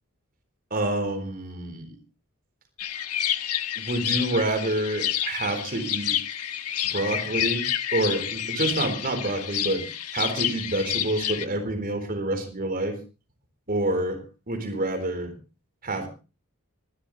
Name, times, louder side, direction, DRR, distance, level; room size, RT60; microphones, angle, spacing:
voice 1, 0.7-2.0 3.8-6.2 6.9-7.6 7.9-9.9 10.1-13.0 13.7-15.3 15.8-16.1, right 1 dB, 40° right, 5 dB, 3.9 m, -27 dB
sound 1, 2.8-11.4, left 11 dB, 90° left, 1.4 m, -29 dB
25.0 x 12.5 x 3.2 m, 0.33 s
head